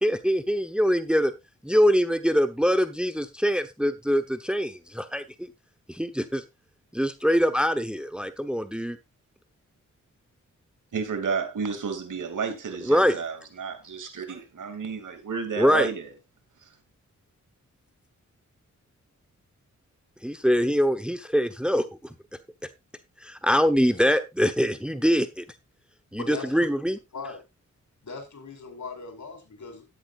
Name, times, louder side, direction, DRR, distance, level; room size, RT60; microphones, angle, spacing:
voice 1, 0.0-1.3 1.6-5.5 5.9-6.4 6.9-9.0 12.8-13.1 15.6-15.9 20.2-21.8 23.2-25.4 26.1-27.0, equal, 5° right, 1.1 m, -23 dB
voice 2, 10.9-16.1 16.6-16.7, right 5 dB, 75° right, 2.7 m, -31 dB
voice 3, 26.1-26.7 27.1-27.4 28.0-29.9, left 4 dB, 65° left, 4.7 m, -39 dB
12.5 x 10.5 x 2.5 m
cardioid pair, 60°, 31 cm